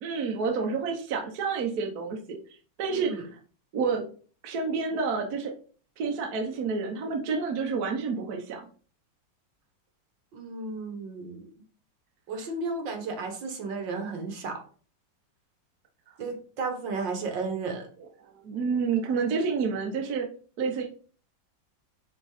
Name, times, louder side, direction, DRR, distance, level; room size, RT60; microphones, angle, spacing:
voice 1, 0.0-2.2 2.8-3.1 3.7-4.0 4.4-5.5 6.0-8.6 18.2-20.3 20.6-20.8, right 5 dB, 60° right, 1 dB, 1.3 m, -29 dB
voice 2, 2.9-3.2 10.3-11.5 12.3-14.6 16.2-17.9, right 3 dB, 75° right, 4 dB, 2.0 m, -33 dB
5.2 x 4.0 x 4.8 m, 0.41 s
omnidirectional pair, 2.0 m